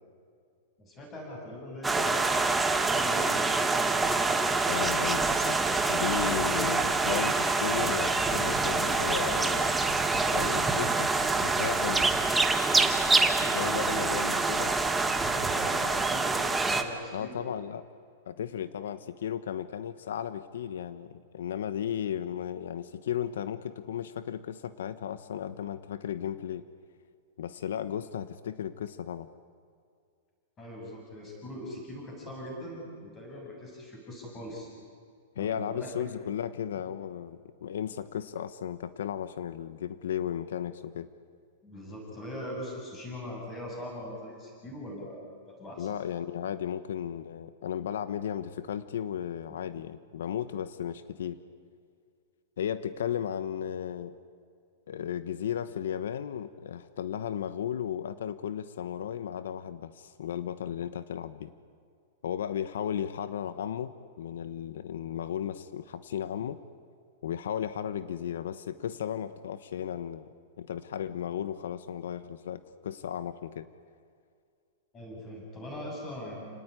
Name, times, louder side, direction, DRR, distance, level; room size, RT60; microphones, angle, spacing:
voice 1, 0.8-2.6 2.9-4.1 13.6-14.0 15.1-17.5 30.6-34.7 35.4-35.9 36.7-36.8 41.6-45.9 74.9-76.6, left 1 dB, 15° left, -1 dB, 7.6 m, -41 dB
sound 1, 1.8-16.8, right 3 dB, 5° right, 1.2 m, -26 dB
voice 2, 4.7-5.6 5.9-9.7 10.3-11.1 11.4-12.0 13.4-14.7 17.1-17.8 18.3-26.6 27.4-29.3 35.3-41.1 45.8-51.4 52.6-54.1 54.9-61.5 62.2-63.9 64.2-66.6 67.2-73.7, left 9 dB, 85° left, 13 dB, 1.2 m, -35 dB
30.0 x 19.0 x 9.9 m, 2.2 s
supercardioid pair, 180°, 0 cm